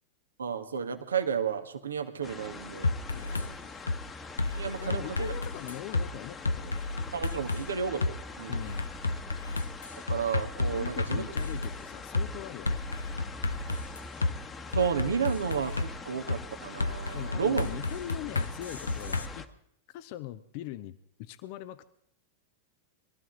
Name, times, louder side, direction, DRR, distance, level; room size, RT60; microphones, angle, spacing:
voice 1, 0.4-2.9 3.2-3.6 4.5-5.3 7.1-8.7 10.1-11.2 14.7-17.7, right 7 dB, 70° right, 8 dB, 1.5 m, -32 dB
sound 1, 2.2-19.5, left 4 dB, 20° left, 1.3 m, -44 dB
sound 2, 2.8-3.5 3.9-4.0 4.4-6.1 6.4-7.6 8.0-8.1 8.5-11.8 12.1-12.3 12.7-14.3 14.7-15.9 16.3-16.4 16.8-19.3, left 3 dB, 80° left, 0.7 m, -31 dB
voice 2, 3.1-4.0 4.8-6.8 8.5-8.9 10.7-12.8 17.1-19.5 19.9-21.9, left 14 dB, 45° left, 13 dB, 0.8 m, -42 dB
22.5 x 14.0 x 3.9 m, 0.74 s
figure-of-eight pair, 90°, 0 cm